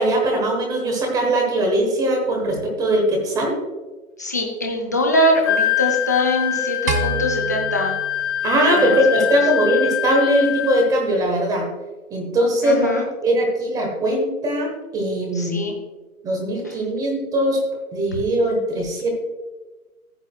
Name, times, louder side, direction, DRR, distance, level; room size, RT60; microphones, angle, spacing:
voice 1, 0.0-3.6 8.4-11.6 12.1-12.9 13.2-15.7 16.2-17.6 17.9-19.2, right 1 dB, 10° right, 1 dB, 1.2 m, -20 dB
voice 2, 4.2-7.9 8.7-9.0 12.6-13.1 15.4-15.7, left 1 dB, 15° left, 1 dB, 0.5 m, -22 dB
Wind instrument woodwind instrument, 5.4-10.9, left 10 dB, 50° left, 1.3 m, -24 dB
sound 1, 6.9-9.3, right 2 dB, 90° right, 1.9 m, -28 dB
14.5 x 8.1 x 2.3 m, 1.2 s
figure-of-eight pair, 145°, 44 cm